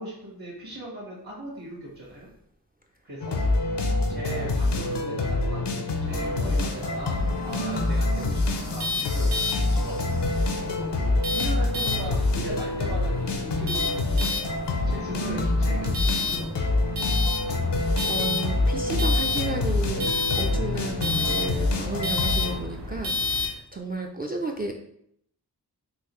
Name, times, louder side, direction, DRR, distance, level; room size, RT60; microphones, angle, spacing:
voice 1, 0.0-2.3 3.0-3.6 4.1-9.3 9.7-10.0 10.6-14.4 14.8-16.7, right 1 dB, 60° right, -6 dB, 1.3 m, -39 dB
sound 1, 3.2-22.6, left 2 dB, 75° left, 0.6 m, -26 dB
sound 2, 6.0-23.5, left 3 dB, 75° right, 0.9 m, -32 dB
voice 2, 17.5-24.8, right 2 dB, 25° right, 2 dB, 0.3 m, -33 dB
3.8 x 2.7 x 3.0 m, 0.71 s
wide cardioid pair, 45°, 41 cm